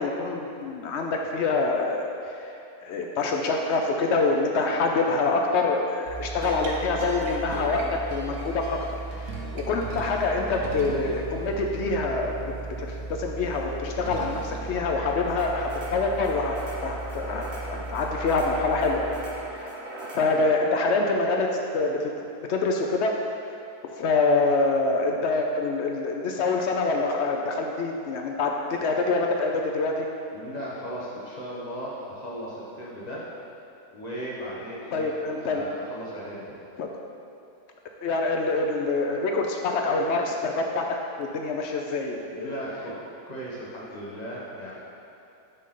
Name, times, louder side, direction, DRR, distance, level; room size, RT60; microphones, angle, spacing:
voice 1, 0.0-2.5 2.8-12.3 12.8-16.5 16.8-19.2 19.5-19.7 20.1-22.1 22.5-23.2 24.0-30.1 34.9-35.6 36.8-36.9 38.0-40.9 41.2-42.6, left 3 dB, 65° left, 2 dB, 0.7 m, -26 dB
sound 1, 6.0-19.6, right 2 dB, 65° right, 1.0 m, -36 dB
sound 2, 15.2-20.3, right 1 dB, 85° right, 2.2 m, -39 dB
voice 2, 30.3-33.2 33.9-35.1 35.4-36.4 42.3-42.9 43.2-44.7, equal, 30° left, -7 dB, 1.3 m, -37 dB
6.3 x 5.4 x 3.8 m, 2.8 s
omnidirectional pair, 1.6 m